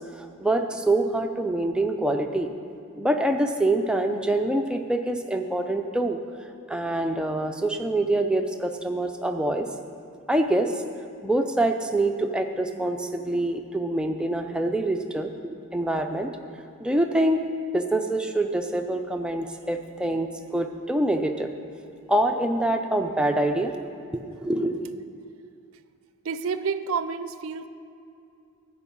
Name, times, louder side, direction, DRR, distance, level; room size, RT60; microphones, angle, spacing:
voice 1, 0.0-2.5 3.0-6.2 6.7-9.7 10.3-10.8 11.2-16.3 16.8-17.4 17.7-21.5 22.1-23.7 24.1-24.9, right 1 dB, 5° right, 4 dB, 0.4 m, -25 dB
voice 2, 26.2-27.7, right 5 dB, 65° right, 12 dB, 0.4 m, -29 dB
11.0 x 5.3 x 8.5 m, 2.6 s
head